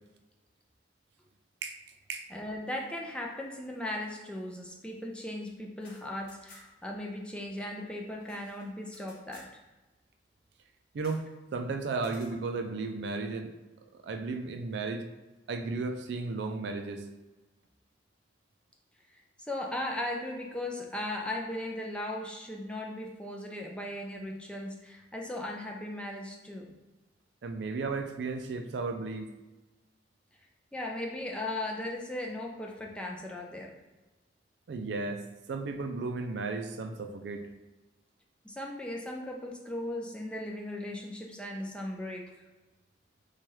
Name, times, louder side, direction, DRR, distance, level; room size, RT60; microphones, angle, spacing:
voice 1, 2.3-9.5 19.1-26.7 30.7-33.8 38.4-42.3, left 1 dB, 5° left, -1 dB, 0.4 m, -37 dB
sound 1, 5.8-6.9 7.2-7.3 7.6-9.6 11.0-11.3 12.0-12.4, left 2 dB, 50° left, 1.0 m, -57 dB
voice 2, 10.9-11.3 11.5-13.5 13.9-15.1 15.5-17.1 27.4-29.3 34.7-37.5, right 3 dB, 70° right, 6 dB, 0.4 m, -34 dB
4.4 x 2.3 x 3.1 m, 1.1 s
head